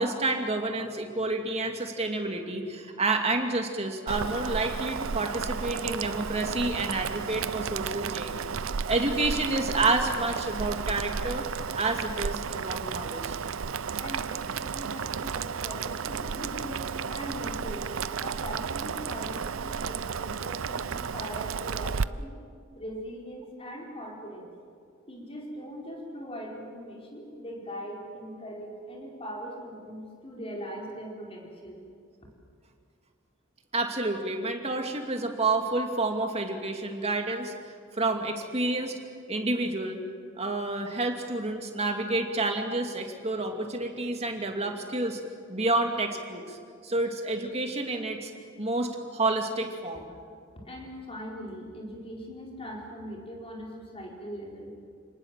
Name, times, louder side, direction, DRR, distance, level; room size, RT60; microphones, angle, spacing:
voice 1, 0.0-8.4 8.9-11.5 11.7-13.4 33.7-37.5 37.9-39.0 39.3-40.0 40.4-45.2 45.5-46.6 46.8-48.3 48.6-50.1, right 2 dB, 30° right, 3 dB, 2.5 m, -29 dB
Boiling, 4.1-22.0, right 6 dB, 80° right, 0.6 m, -33 dB
voice 2, 13.9-17.9 18.2-22.4 22.7-24.5 25.1-31.8 50.6-54.7, equal, 30° left, -1 dB, 4.5 m, -40 dB
29.0 x 19.0 x 7.6 m, 2.3 s
head